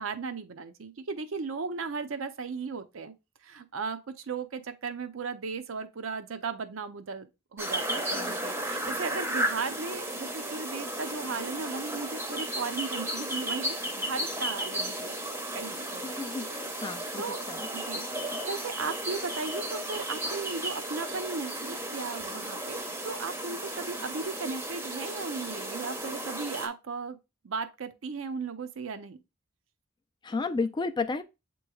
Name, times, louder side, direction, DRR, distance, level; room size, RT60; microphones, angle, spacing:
voice 1, 0.0-3.1 3.4-7.3 7.5-15.2 15.5-16.1 16.5-16.8 17.2-17.4 17.7-27.2 27.4-29.2, right 4 dB, 75° right, 0.6 m, -36 dB
sound 1, 7.6-26.7, right 1 dB, 10° right, 0.7 m, -34 dB
voice 2, 7.9-8.5 16.0-16.5 16.8-17.6 30.2-31.2, left 4 dB, 20° left, 0.4 m, -33 dB
7.6 x 3.0 x 2.3 m
head